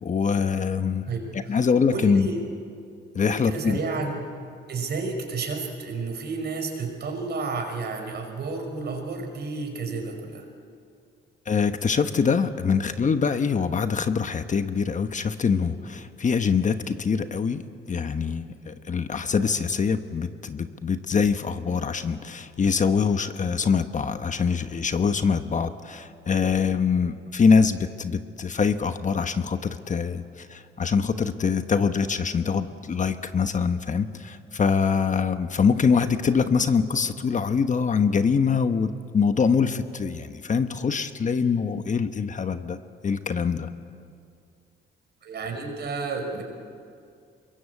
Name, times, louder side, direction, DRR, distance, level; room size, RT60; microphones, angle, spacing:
voice 1, 0.0-1.0 1.3-2.3 3.1-3.8 11.5-42.8 43.0-43.7, left 5 dB, 40° left, 9 dB, 1.2 m, -24 dB
voice 2, 1.1-1.6 1.9-2.4 3.2-4.2 4.7-10.4 45.2-46.4, right 4 dB, 55° right, 3 dB, 5.5 m, -31 dB
25.0 x 22.0 x 8.3 m, 2.4 s
cardioid pair, 90°, 20 cm